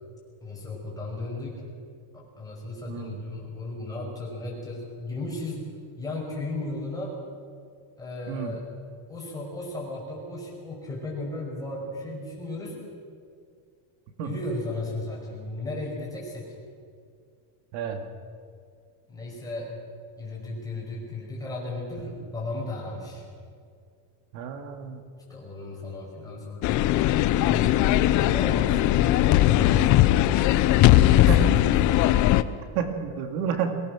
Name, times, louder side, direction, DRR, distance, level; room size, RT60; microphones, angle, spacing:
voice 1, 0.4-1.6 2.1-5.7 6.0-7.2 8.0-8.6 9.1-12.8 14.2-16.5 19.1-19.7 20.2-23.2 25.3-27.1 27.3-30.0 31.1-31.5 31.8-31.9, left 2 dB, 10° left, -4 dB, 5.4 m, -35 dB
voice 2, 2.9-3.2 8.3-8.5 14.2-14.4 17.7-18.0 24.3-25.0 31.1-31.6 32.7-33.8, right 7 dB, 80° right, 6 dB, 2.2 m, -30 dB
sound 1, 26.6-32.4, left 14 dB, 40° left, 0.6 m, -19 dB
22.5 x 18.5 x 6.2 m, 2.3 s
cardioid pair, 170°, 46 cm